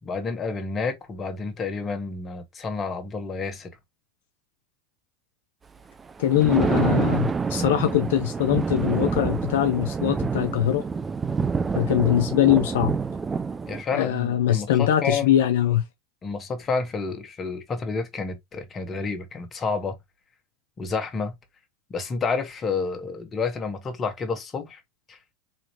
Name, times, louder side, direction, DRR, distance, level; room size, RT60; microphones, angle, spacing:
voice 1, 0.0-3.7 13.7-15.3 16.2-19.9 20.8-21.3 21.9-24.8 25.1-25.2, left 4 dB, 30° left, 1.4 m, -29 dB
Thunder, 6.1-13.8, right 5 dB, 20° right, 0.4 m, -27 dB
voice 2, 6.2-10.8 11.8-13.0 13.9-15.8, left 11 dB, 75° left, 0.5 m, -22 dB
4.2 x 2.9 x 2.7 m
hypercardioid pair, 95°, 0 cm